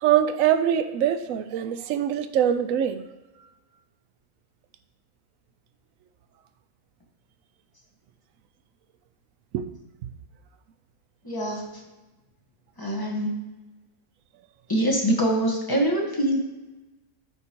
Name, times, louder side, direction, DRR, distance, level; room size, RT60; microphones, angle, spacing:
voice 1, 0.0-3.0 9.5-9.7, right 10 dB, 75° right, 10 dB, 0.9 m, -23 dB
voice 2, 11.2-11.8 12.8-13.3 14.7-16.4, right 1 dB, 15° left, 0 dB, 1.2 m, -24 dB
12.5 x 5.2 x 2.9 m, 1.1 s
omnidirectional pair, 1.5 m